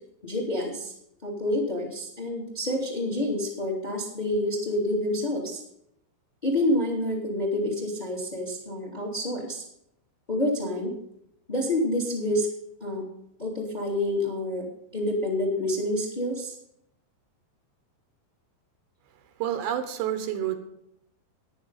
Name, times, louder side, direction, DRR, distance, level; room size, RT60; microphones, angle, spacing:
voice 1, 0.2-0.9 1.2-5.6 6.4-9.6 10.3-10.9 11.5-12.5 12.8-13.1 13.4-14.6 14.9-16.5, left 1 dB, 15° left, 0 dB, 1.9 m, -28 dB
voice 2, 19.4-20.6, right 10 dB, 75° right, 7 dB, 3.2 m, -28 dB
14.0 x 10.5 x 4.0 m, 0.76 s
omnidirectional pair, 5.3 m